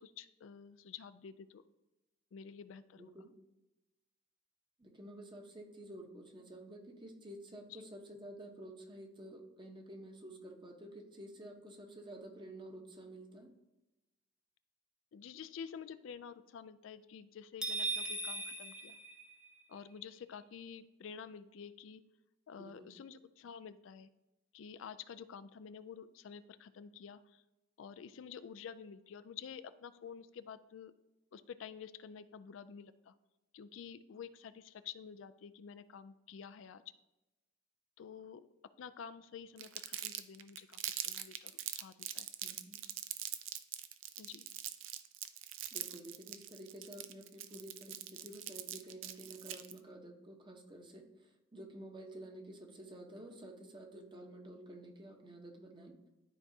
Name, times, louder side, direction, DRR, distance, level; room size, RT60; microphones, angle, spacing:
voice 1, 0.0-1.6 2.3-3.1 7.7-7.9 15.1-19.0 19.7-22.0 22.5-24.1 24.5-27.4 27.8-30.9 31.3-33.1 33.5-36.8 38.0-38.5 38.8-42.3 44.2-44.5, left 7 dB, 75° left, 13 dB, 0.4 m, -50 dB
voice 2, 2.9-3.3 4.8-13.5 22.6-22.9 42.4-42.8 45.7-51.0 51.5-55.9, right 1 dB, 25° right, 2 dB, 1.0 m, -51 dB
sound 1, 17.6-19.8, right 2 dB, 5° right, 0.6 m, -39 dB
Crumpling crinkling, 39.6-49.8, right 12 dB, 75° right, 0.5 m, -43 dB
12.0 x 4.6 x 2.7 m, 1.0 s
head